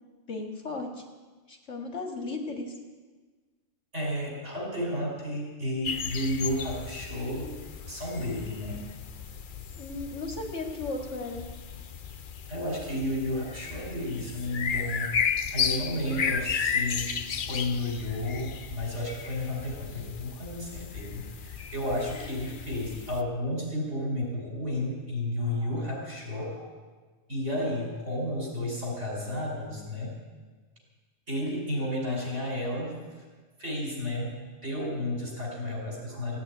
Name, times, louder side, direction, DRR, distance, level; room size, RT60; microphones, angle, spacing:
voice 1, 0.3-1.0 1.5-2.7 9.8-11.4 15.9-16.0, left 3 dB, 75° left, 2 dB, 2.4 m, -35 dB
voice 2, 3.9-7.6 7.9-8.8 12.5-15.1 15.5-17.2 17.5-26.7 27.3-30.2 31.3-33.2 33.6-36.4, left 1 dB, 75° right, -2 dB, 5.4 m, -32 dB
sound 1, 5.8-23.2, left 6 dB, 50° left, 0.7 m, -34 dB
16.0 x 8.4 x 9.4 m, 1.4 s
omnidirectional pair, 1.3 m